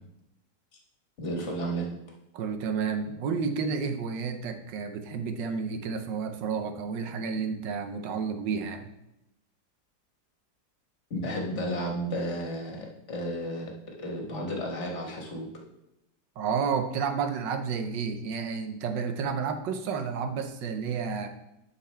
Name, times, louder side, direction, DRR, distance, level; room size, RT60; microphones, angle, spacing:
voice 1, 1.2-1.9 11.1-13.7 14.0-15.5, equal, 40° left, 0 dB, 1.7 m, -32 dB
voice 2, 2.3-8.9 16.4-21.3, right 6 dB, 85° right, 7 dB, 1.5 m, -31 dB
10.5 x 5.6 x 3.4 m, 0.86 s
omnidirectional pair, 1.9 m